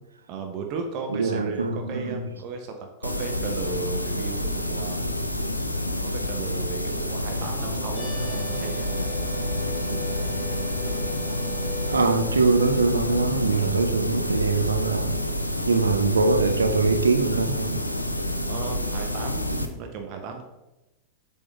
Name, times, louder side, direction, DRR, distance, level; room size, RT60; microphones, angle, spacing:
voice 1, 0.3-5.1 6.0-8.9 15.5-15.7 18.5-20.4, right 5 dB, 40° right, 0.8 m, -35 dB
voice 2, 1.1-2.3 11.9-15.2 15.7-17.8, right 4 dB, 75° right, 0.5 m, -23 dB
sound 1, 3.0-19.7, left 1 dB, 85° left, 0.5 m, -28 dB
Race car auto racing / Accelerating revving vroom, 6.8-14.0, left 3 dB, 10° right, 0.7 m, -39 dB
sound 2, 7.9-12.0, right 5 dB, 20° left, 2.3 m, -44 dB
7.7 x 3.7 x 3.9 m
figure-of-eight pair, 90°, 0 cm